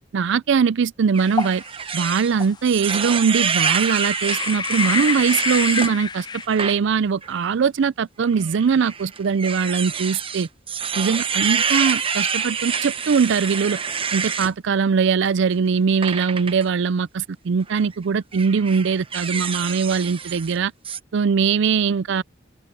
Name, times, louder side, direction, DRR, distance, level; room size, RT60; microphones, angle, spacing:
voice 1, 0.1-1.6 1.9-10.5 10.9-13.8 14.1-20.7 21.1-22.2, right 6 dB, 65° right, 0.4 m, -21 dB
sound 1, 1.1-5.9 6.4-6.8 7.2-7.3 8.4-14.5 16.0-16.6 17.6-17.8 18.3-20.6 20.8-21.0, right 6 dB, 30° right, 0.9 m, -26 dB
sound 2, 1.3-1.6 2.3-2.5 3.7-6.4, left 5 dB, 20° left, 0.4 m, -27 dB
open air
head